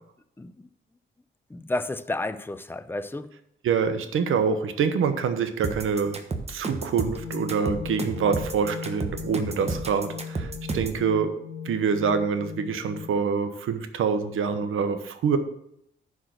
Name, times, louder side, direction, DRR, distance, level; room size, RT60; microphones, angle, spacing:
voice 1, 0.4-0.7 1.5-3.3, left 2 dB, 10° left, 0.5 m, -31 dB
voice 2, 3.6-6.2 6.5-11.4 11.6-15.4, right 6 dB, 75° right, 1.0 m, -26 dB
sound 1, 5.6-11.0, right 3 dB, 30° right, 1.2 m, -32 dB
sound 2, 7.1-13.1, left 7 dB, 80° left, 1.1 m, -38 dB
10.5 x 4.9 x 6.4 m
cardioid pair, 90°, 21 cm